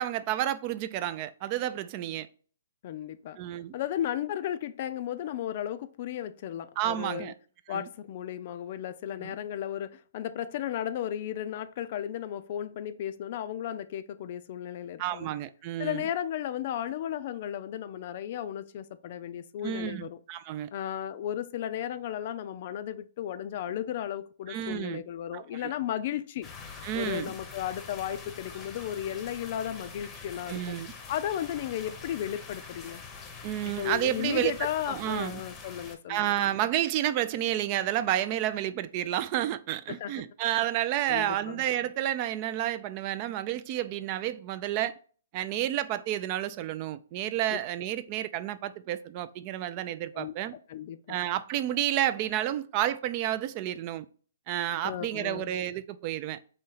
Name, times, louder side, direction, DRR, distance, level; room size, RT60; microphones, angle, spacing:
voice 1, 0.0-2.3 3.4-3.7 6.8-7.3 7.7-7.9 9.2-9.4 15.0-16.0 19.6-20.7 24.5-25.0 25.3-25.7 26.8-27.3 30.5-30.9 33.4-35.4 36.1-45.0 45.3-50.5 51.1-54.1 54.5-56.4, right 12 dB, 35° right, 0.3 m, -30 dB
voice 2, 2.8-3.4 3.7-7.3 7.7-15.3 15.8-20.2 20.7-26.5 26.9-30.7 31.1-33.0 33.7-36.4 39.9-40.1 41.1-41.6 47.5-47.6 50.1-50.3 50.7-51.2 54.8-55.5, left 10 dB, 45° left, 0.4 m, -34 dB
sound 1, 26.4-36.0, left 5 dB, 20° left, 0.7 m, -45 dB
4.1 x 2.8 x 3.9 m
hypercardioid pair, 140°, 0 cm